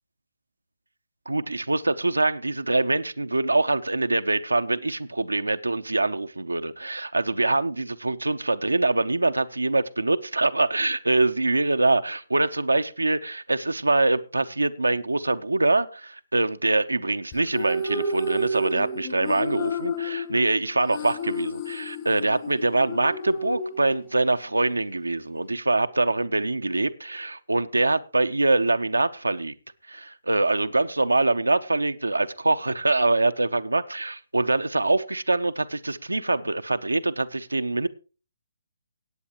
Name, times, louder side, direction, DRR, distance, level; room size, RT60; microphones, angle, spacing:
voice 1, 1.3-29.5 29.9-37.9, right 2 dB, 80° right, 0.7 m, -24 dB
sound 1, 17.3-24.4, left 1 dB, 30° left, 1.3 m, -31 dB
17.5 x 8.5 x 3.0 m
figure-of-eight pair, 135°, 0 cm